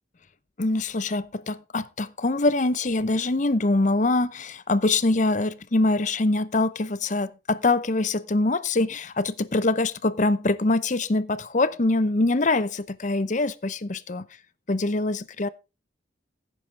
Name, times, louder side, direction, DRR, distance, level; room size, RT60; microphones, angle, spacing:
voice 1, 0.6-14.3 14.7-15.5, left 2 dB, 45° left, 0.7 m, -24 dB
16.0 x 9.1 x 3.4 m
head